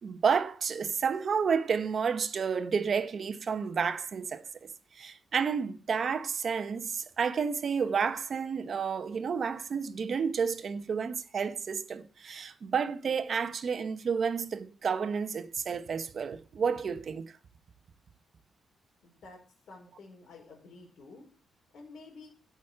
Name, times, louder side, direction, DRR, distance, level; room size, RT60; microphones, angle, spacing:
voice 1, 0.0-4.4 4.9-17.3, right 6 dB, 40° right, 1.1 m, -30 dB
voice 2, 19.0-19.4 19.7-21.3 21.7-22.3, left 3 dB, 60° left, 4.9 m, -50 dB
16.5 x 6.3 x 6.9 m
wide cardioid pair, 170°, 0 cm